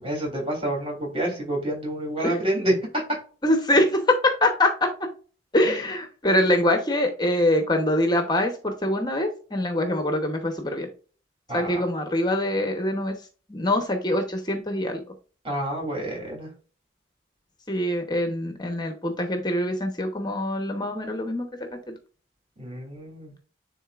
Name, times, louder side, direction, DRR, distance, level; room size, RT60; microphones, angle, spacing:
voice 1, 0.0-3.0 11.5-11.8 15.4-16.5 22.6-23.3, right 1 dB, 30° right, -2 dB, 3.2 m, -28 dB
voice 2, 3.4-5.1 5.5-10.9 11.5-13.2 13.5-15.0 17.7-21.9, left 1 dB, 20° left, 5 dB, 0.9 m, -24 dB
10.0 x 3.9 x 2.4 m, 0.38 s
head